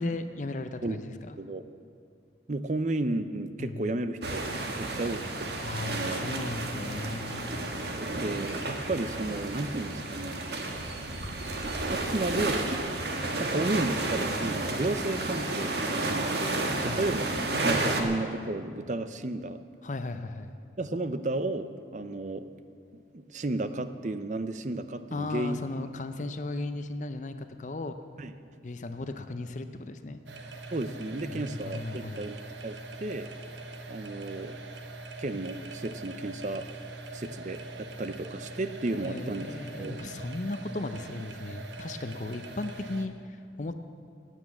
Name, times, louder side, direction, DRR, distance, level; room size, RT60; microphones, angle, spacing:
voice 1, 0.0-1.4 3.6-3.9 5.6-7.6 16.7-17.0 19.8-20.6 25.1-28.0 28.6-30.2 31.3-32.2 38.9-43.7, left 2 dB, 40° left, 9 dB, 0.6 m, -36 dB
voice 2, 2.5-5.5 5.8-6.2 8.0-10.4 11.9-12.7 13.3-17.3 17.6-19.6 20.8-22.5 22.9-25.6 28.2-28.3 30.7-33.3 33.9-34.6 35.2-36.7 37.1-39.5 39.8-40.0, right 2 dB, 40° right, 11 dB, 0.6 m, -33 dB
sound 1, 4.2-18.0, right 2 dB, 65° right, 1.5 m, -32 dB
sound 2, 30.3-43.1, right 2 dB, 80° right, 1.1 m, -42 dB
17.0 x 9.2 x 7.2 m, 2.3 s
head